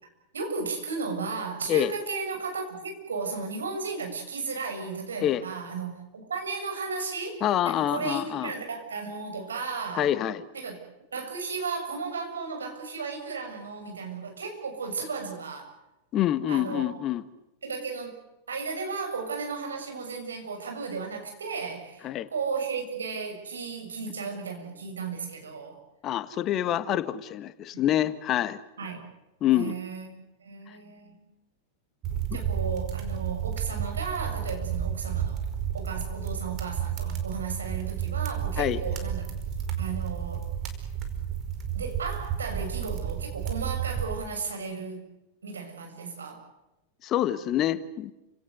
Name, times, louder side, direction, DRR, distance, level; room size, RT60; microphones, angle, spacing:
voice 1, 0.0-6.0 6.3-10.1 10.5-10.8 11.1-15.7 16.5-16.9 17.6-18.2 18.5-25.8 27.7-27.8 28.8-29.0 29.5-31.2 32.3-35.4 35.7-39.2 39.8-40.5 41.7-45.0 45.4-46.4, right 4 dB, 75° right, 4 dB, 6.8 m, -34 dB
voice 2, 7.4-8.5 10.0-10.4 16.1-17.2 22.0-22.3 26.0-28.6 29.4-29.7 30.7-30.8 38.6-38.8 47.0-48.1, left 12 dB, 35° left, 14 dB, 1.5 m, -26 dB
sound 1, 32.0-44.1, right 9 dB, 35° right, 4.9 m, -31 dB
30.0 x 18.0 x 8.0 m, 0.97 s
figure-of-eight pair, 90°, 0 cm